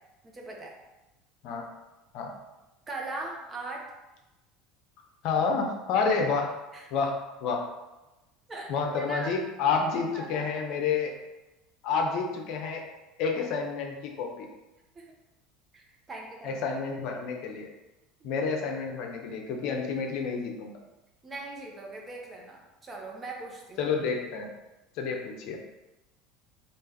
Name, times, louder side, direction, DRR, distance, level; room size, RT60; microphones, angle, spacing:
voice 1, 0.2-0.8 2.9-3.9 6.7-6.9 8.5-9.3 9.9-10.5 14.9-15.1 15.7-16.8 18.2-18.3 21.2-23.8, right 2 dB, 25° right, -1 dB, 0.9 m, -40 dB
voice 2, 5.2-6.5 6.9-7.6 8.7-11.2 11.8-12.8 13.2-14.5 16.4-17.7 18.2-20.7 23.8-24.5 24.9-25.6, left 5 dB, 65° left, 2 dB, 0.6 m, -29 dB
3.2 x 2.5 x 3.3 m, 1.0 s
hypercardioid pair, 85°, 0 cm